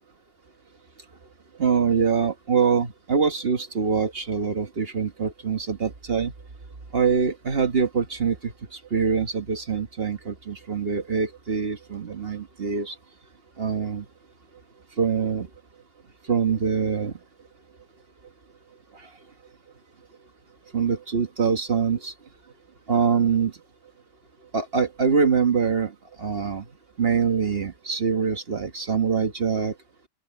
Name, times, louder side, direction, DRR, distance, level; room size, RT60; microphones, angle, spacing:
voice 1, 1.6-6.3 6.9-8.5 8.9-12.9 13.6-14.0 15.0-15.5 16.3-17.1 20.7-22.1 22.9-23.5 24.5-25.9 26.2-26.6 27.0-29.7, right 6 dB, 55° right, 1.6 m, -24 dB
open air
omnidirectional pair, 1.2 m